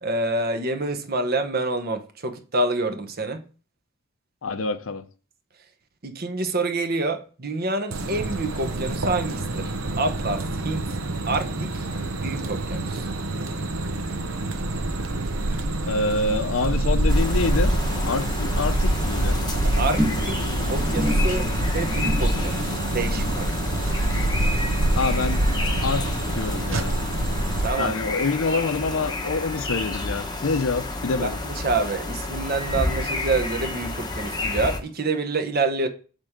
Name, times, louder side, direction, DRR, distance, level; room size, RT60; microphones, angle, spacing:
voice 1, 0.0-3.4 6.0-9.7 10.0-10.9 11.3-11.9 12.1-13.1 19.8-23.5 27.6-27.9 31.2-35.9, right 2 dB, 45° right, 0.9 m, -27 dB
voice 2, 4.4-5.1 15.8-17.7 18.0-19.4 24.9-25.4 25.8-26.9 27.7-31.4, left 3 dB, 75° left, 0.6 m, -26 dB
sound 1, 7.9-27.7, right 1 dB, 75° right, 0.9 m, -26 dB
sound 2, 17.1-34.8, left 2 dB, 20° left, 0.8 m, -30 dB
sound 3, 20.0-26.6 26.8-27.3 27.6-27.7, equal, 5° right, 0.6 m, -33 dB
7.6 x 3.7 x 6.6 m
head